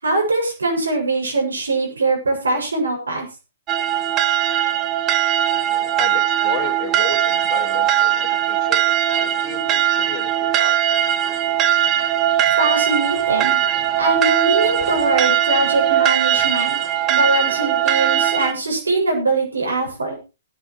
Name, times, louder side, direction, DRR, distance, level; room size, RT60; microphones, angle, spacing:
voice 1, 0.0-3.3 12.6-13.6 14.0-16.8 17.1-20.3, right 2 dB, 85° right, 1 dB, 7.1 m, -22 dB
sound 1, 3.7-18.5, right 11 dB, 25° right, 1.2 m, -19 dB
voice 2, 6.0-11.2, left 10 dB, 40° left, 8 dB, 2.7 m, -34 dB
20.5 x 11.0 x 3.2 m, 0.30 s
hypercardioid pair, 125°, 0 cm